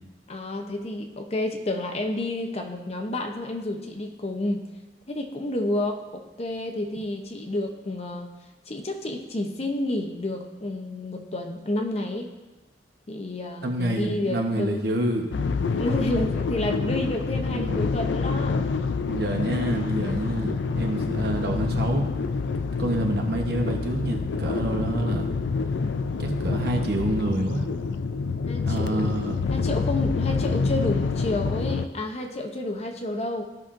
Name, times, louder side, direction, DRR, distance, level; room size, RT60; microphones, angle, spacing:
voice 1, 0.3-4.7 5.1-8.3 8.7-12.3 13.1-14.8 15.8-18.6 28.5-29.2 29.5-33.4, left 1 dB, 35° left, 4 dB, 0.7 m, -30 dB
voice 2, 13.6-15.3 17.5-17.8 19.0-22.1 22.8-25.3 26.2-27.7 28.6-29.4, right 1 dB, 60° right, 2 dB, 1.0 m, -27 dB
sound 1, 15.3-31.9, left 4 dB, 85° left, 0.4 m, -27 dB
14.5 x 5.7 x 2.5 m, 1.2 s
head